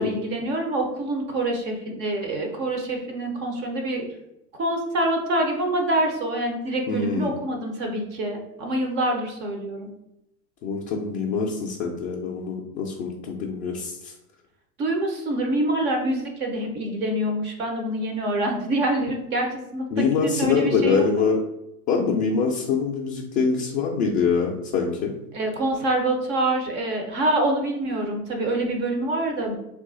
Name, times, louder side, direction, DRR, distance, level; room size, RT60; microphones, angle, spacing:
voice 1, 0.0-4.1 4.6-9.9 14.8-21.3 25.3-29.6, right 1 dB, 25° right, 3 dB, 0.4 m, -26 dB
voice 2, 6.9-7.4 10.6-14.1 19.9-21.4 21.9-25.1, left 5 dB, 35° left, -2 dB, 0.4 m, -24 dB
2.9 x 2.4 x 3.7 m, 0.84 s
hypercardioid pair, 120°, 48 cm